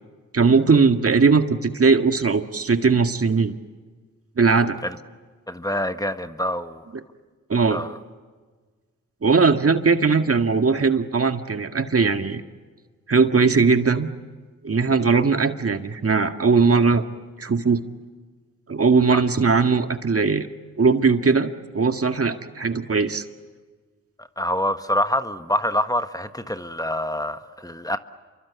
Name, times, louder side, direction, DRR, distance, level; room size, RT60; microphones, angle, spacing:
voice 1, 0.3-3.5 4.4-4.8 6.9-7.0 7.5-7.8 9.2-12.4 13.1-14.1 14.6-17.0 17.4-17.8 18.7-20.5 20.8-23.2, right 4 dB, 45° right, 2.0 m, -19 dB
voice 2, 5.5-6.8 7.7-7.9 19.1-19.2 24.2-28.0, left 1 dB, 10° left, 1.5 m, -26 dB
28.0 x 24.0 x 8.4 m
supercardioid pair, 45°, 32 cm